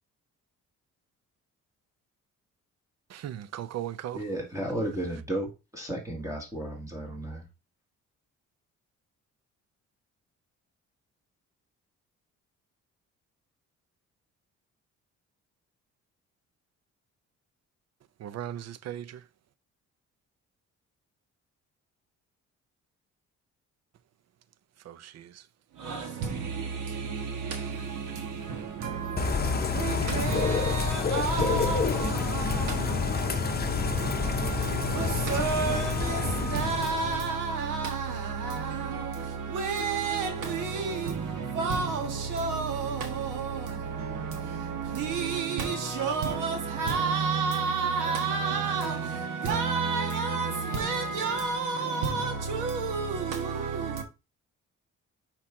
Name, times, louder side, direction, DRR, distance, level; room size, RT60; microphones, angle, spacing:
voice 1, 3.1-4.2 18.2-19.2 24.8-25.4, right 11 dB, 60° right, 0.6 m, -38 dB
voice 2, 4.1-7.4, right 1 dB, 10° right, 1.8 m, -33 dB
voice 3, 25.7-54.0, right 5 dB, 90° right, 1.5 m, -30 dB
Bird / Rain, 29.2-37.3, left 6 dB, 30° left, 0.8 m, -28 dB
6.1 x 4.5 x 3.7 m
cardioid pair, 90°, 30 cm